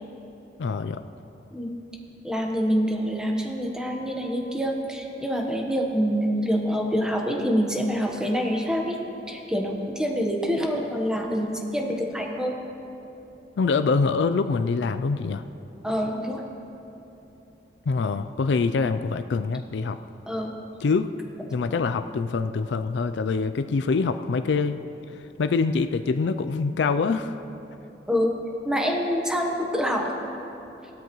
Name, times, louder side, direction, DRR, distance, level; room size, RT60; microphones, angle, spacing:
voice 1, 0.6-1.0 13.6-15.4 17.9-20.0 20.8-21.1 21.5-24.8 25.4-27.3, left 4 dB, 80° left, 9 dB, 0.4 m, -24 dB
voice 2, 2.2-9.0 9.3-12.5 15.8-16.4 20.3-20.5 28.1-28.3 28.6-30.1, equal, 5° right, 1 dB, 1.1 m, -26 dB
17.0 x 13.0 x 3.1 m, 2.9 s
head